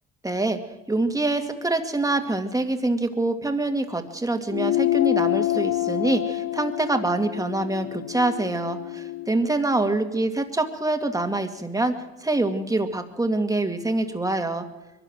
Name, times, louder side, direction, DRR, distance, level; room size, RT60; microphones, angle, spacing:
voice 1, 0.2-0.6 0.9-11.9 12.2-14.7, right 2 dB, 10° right, 6 dB, 2.2 m, -25 dB
sound 1, 4.5-9.3, left 14 dB, 70° left, 1.3 m, -26 dB
22.5 x 13.0 x 9.2 m, 1.0 s
cardioid pair, 90°, 30 cm